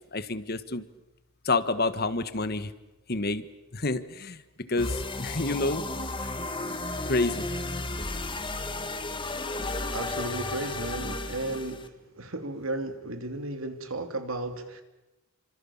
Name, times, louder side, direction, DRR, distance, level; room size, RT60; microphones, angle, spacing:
voice 1, 0.1-0.8 1.5-2.7 3.1-3.4 3.7-4.4 4.7-5.8 7.1-7.4, left 3 dB, 45° left, 13 dB, 1.4 m, -28 dB
sound 1, 4.8-11.9, left 2 dB, 25° left, 1.8 m, -33 dB
voice 2, 9.9-11.8 12.1-14.8, right 2 dB, 80° right, 7 dB, 3.1 m, -34 dB
29.0 x 25.5 x 7.3 m, 1.0 s
head